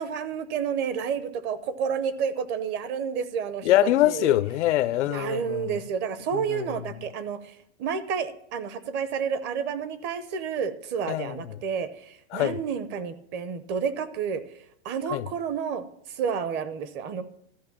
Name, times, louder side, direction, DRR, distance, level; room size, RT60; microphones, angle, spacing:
voice 1, 0.0-3.7 4.0-4.4 5.1-14.4 14.8-17.2, right 7 dB, 30° right, 0.7 m, -30 dB
voice 2, 3.6-5.8 6.3-7.0 11.1-11.6 12.3-12.6 15.1-15.3, left 14 dB, 85° left, 0.6 m, -24 dB
13.0 x 5.3 x 7.2 m
supercardioid pair, 150°, 34 cm